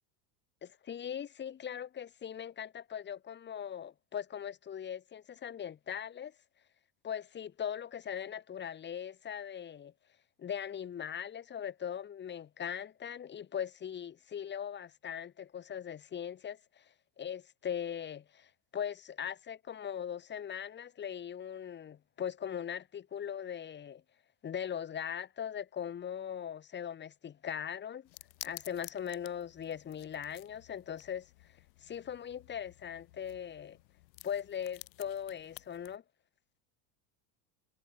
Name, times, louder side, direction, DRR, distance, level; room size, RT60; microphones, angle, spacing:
voice 1, 0.6-6.3 7.0-9.9 10.4-24.0 24.4-28.1 28.4-31.3 31.8-33.8 34.2-36.0, left 8 dB, 20° left, 5.2 m, -40 dB
sound 1, 28.0-36.0, left 18 dB, 85° left, 6.1 m, -53 dB
supercardioid pair, 170°, 50 cm